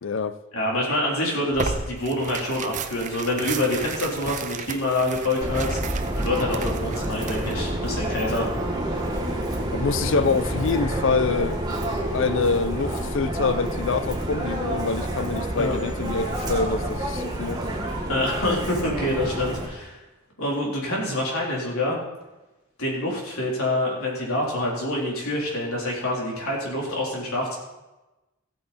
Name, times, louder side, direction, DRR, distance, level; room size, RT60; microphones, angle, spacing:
voice 1, 0.0-0.4 9.7-11.6 12.1-17.6, left 4 dB, 60° left, 0.5 m, -25 dB
voice 2, 0.5-8.5 15.5-15.7 18.1-20.0 20.4-22.0 22.8-27.6, left 1 dB, 80° left, 3.6 m, -26 dB
Tearing, 1.5-7.7, right 5 dB, 35° right, 0.6 m, -34 dB
Subway metro underground, 5.4-19.7, right 1 dB, 20° right, 1.5 m, -28 dB
15.0 x 8.6 x 4.2 m
head